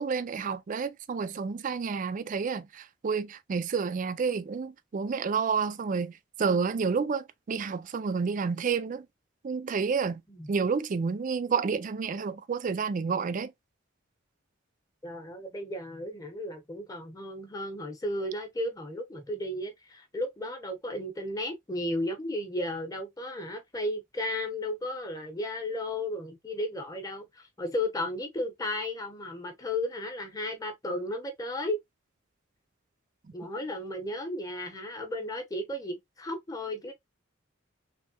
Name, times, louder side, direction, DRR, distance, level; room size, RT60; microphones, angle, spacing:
voice 1, 0.0-9.1 9.4-10.2 10.5-13.5, right 5 dB, 40° right, 0.4 m, -30 dB
voice 2, 15.0-31.8 33.3-36.9, left 1 dB, 20° left, 0.8 m, -34 dB
3.4 x 3.1 x 2.8 m
head